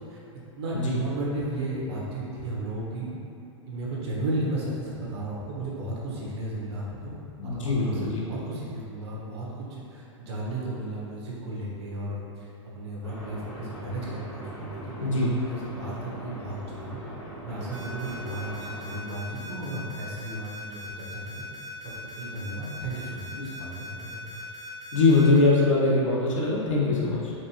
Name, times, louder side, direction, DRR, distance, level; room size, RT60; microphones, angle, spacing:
voice 1, 0.6-3.1 3.7-7.1 7.4-17.0 17.4-21.4 21.8-24.2, right 1 dB, 55° right, -5 dB, 1.2 m, -34 dB
voice 2, 7.4-8.2 15.0-15.3 24.9-27.3, left 3 dB, 80° left, -5 dB, 1.0 m, -22 dB
sound 1, 13.0-19.0, right 1 dB, 15° left, 1.1 m, -41 dB
sound 2, 17.7-25.4, right 1 dB, 80° right, 1.4 m, -41 dB
4.4 x 2.9 x 2.9 m, 2.8 s
hypercardioid pair, 120°, 16 cm